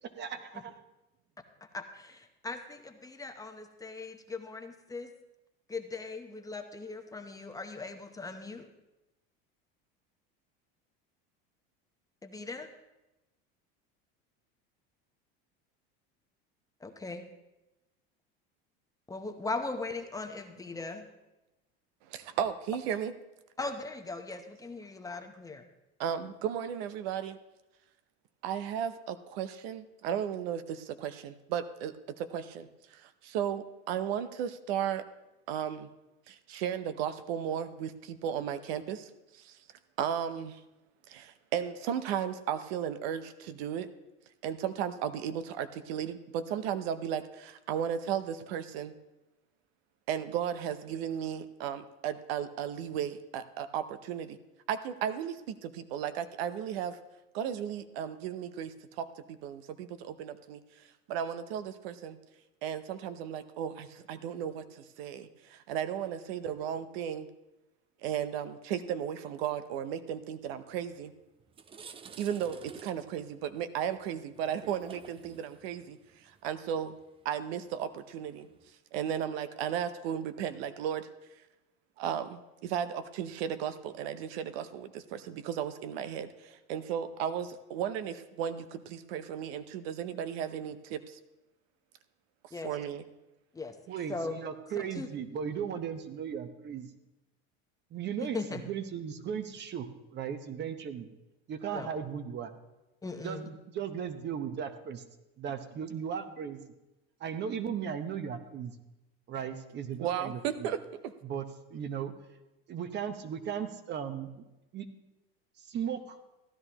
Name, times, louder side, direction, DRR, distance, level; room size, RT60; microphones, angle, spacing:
voice 1, 0.0-0.8 93.9-96.9 97.9-101.1 101.5-102.5 103.2-105.0 105.4-106.6 107.2-108.8 109.3-110.7 111.2-111.4 111.7-112.1 112.7-114.4 114.7-114.9 115.6-116.1, right 8 dB, 35° right, 10 dB, 1.0 m, -37 dB
voice 2, 1.7-5.1 5.7-8.7 12.2-12.7 16.8-17.3 19.1-21.1 23.6-25.7 92.5-92.8 93.5-93.8 94.1-94.4 94.7-95.1 98.2-98.6 101.7-101.9 103.0-103.4, left 3 dB, 10° left, 5 dB, 0.8 m, -39 dB
voice 3, 22.1-23.1 26.0-27.4 28.4-35.1 35.5-35.9 36.3-39.6 40.0-40.6 41.1-43.9 44.4-48.9 50.1-54.4 54.7-57.0 57.3-60.6 61.1-62.2 62.6-67.3 68.0-71.1 72.2-77.0 77.2-78.5 78.9-81.1 82.0-91.2 92.6-93.0 110.0-111.1, right 9 dB, 85° right, 12 dB, 0.7 m, -35 dB
sound 1, 70.9-71.0 71.4-78.7, right 6 dB, 20° right, 0.4 m, -52 dB
15.0 x 11.0 x 2.9 m, 0.99 s
supercardioid pair, 125°, 30 cm